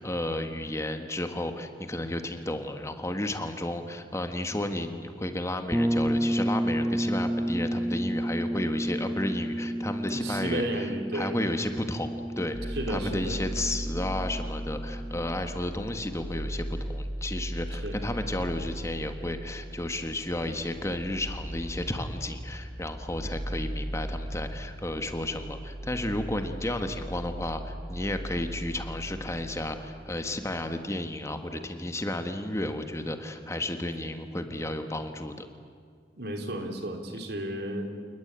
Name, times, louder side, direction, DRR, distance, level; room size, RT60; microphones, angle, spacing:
voice 1, 0.0-35.5, left 1 dB, 15° left, 7 dB, 1.5 m, -33 dB
sound 1, 5.7-15.4, equal, 5° right, 0.9 m, -31 dB
voice 2, 10.1-11.4 12.7-13.4 17.8-18.0 36.2-37.9, right 1 dB, 65° right, 4 dB, 3.4 m, -33 dB
sound 2, 12.5-30.5, equal, 40° right, 5.5 m, -37 dB
29.0 x 20.0 x 8.9 m, 2.1 s
head